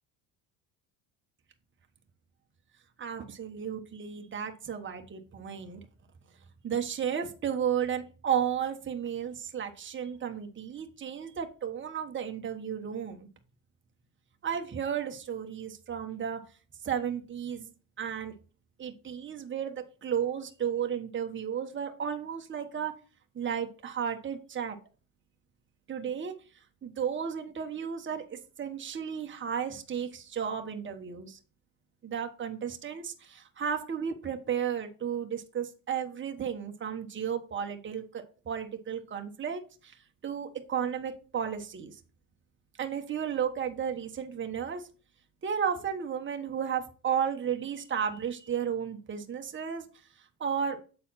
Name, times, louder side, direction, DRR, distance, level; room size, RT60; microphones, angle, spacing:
voice 1, 3.0-5.8 6.6-13.3 14.4-16.4 16.8-17.7 18.0-18.3 18.8-22.9 23.3-24.8 25.9-26.3 26.8-31.4 32.0-40.0 40.2-42.0 42.8-44.9 45.4-49.8 50.4-50.8, right 8 dB, 25° right, 4 dB, 1.1 m, -33 dB
7.6 x 4.1 x 4.2 m, 0.36 s
supercardioid pair, 85°, 44 cm